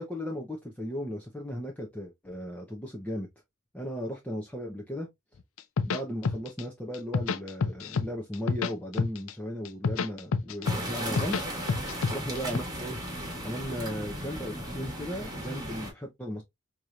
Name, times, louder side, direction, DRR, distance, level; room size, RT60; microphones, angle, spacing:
voice 1, 0.0-3.3 3.7-5.1 5.8-11.4 12.1-13.0 13.4-16.4, equal, 5° left, 0.7 m, -36 dB
sound 1, 5.6-6.6 6.9-8.1 8.3-9.3 9.6-11.4 11.7-12.6, left 4 dB, 75° left, 0.5 m, -28 dB
sound 2, 10.6-15.9, right 1 dB, 20° right, 1.4 m, -36 dB
4.7 x 2.9 x 2.4 m
head